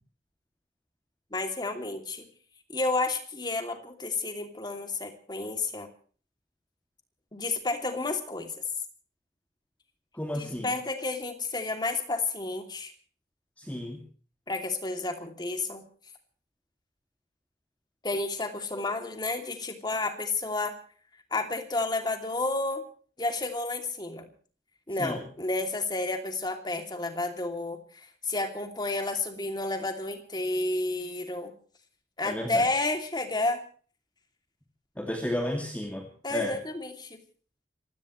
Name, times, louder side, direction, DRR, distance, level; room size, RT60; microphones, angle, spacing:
voice 1, 1.3-2.3 2.7-5.9 7.3-8.6 10.3-12.9 14.5-15.9 18.0-20.7 21.3-22.8 23.2-24.3 24.9-31.5 32.2-33.6 36.2-37.2, left 2 dB, 25° left, 5 dB, 2.9 m, -31 dB
voice 2, 10.1-10.7 13.6-14.0 25.0-25.2 32.2-32.6 35.0-36.5, left 1 dB, 10° left, 2 dB, 2.5 m, -33 dB
26.0 x 17.0 x 3.2 m, 0.42 s
head